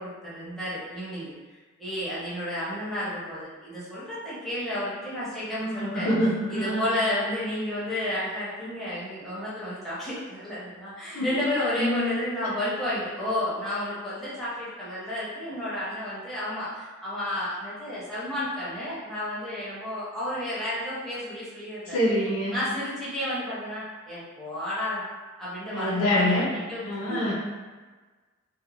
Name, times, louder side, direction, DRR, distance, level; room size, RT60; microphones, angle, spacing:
voice 1, 0.0-1.3 1.8-6.1 6.5-22.0 22.5-25.0 25.4-27.3, left 1 dB, ahead, -11 dB, 0.8 m, -32 dB
voice 2, 5.5-6.9 11.1-11.2 11.8-12.2 21.9-22.6 25.7-26.5 26.8-27.3, left 1 dB, 80° left, -7 dB, 0.6 m, -25 dB
2.5 x 2.1 x 3.0 m, 1.4 s
head